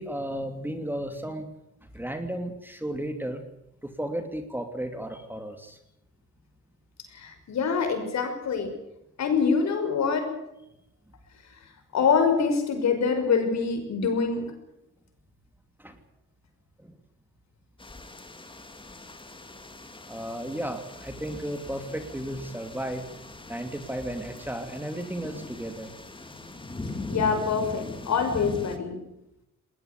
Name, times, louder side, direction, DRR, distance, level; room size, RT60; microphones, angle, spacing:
voice 1, 0.0-1.5 1.8-3.4 3.8-5.8 15.8-16.0 16.8-16.9 20.1-23.0 23.5-25.9, right 1 dB, 5° right, 7 dB, 2.8 m, -34 dB
voice 2, 7.1-8.7 9.2-10.3 11.5-11.6 11.9-14.5 27.1-29.0, left 5 dB, 65° left, 6 dB, 5.9 m, -25 dB
sound 1, 17.8-28.8, left 2 dB, 15° left, 2.8 m, -41 dB
20.0 x 19.0 x 8.4 m, 0.86 s
cardioid pair, 90°, 30 cm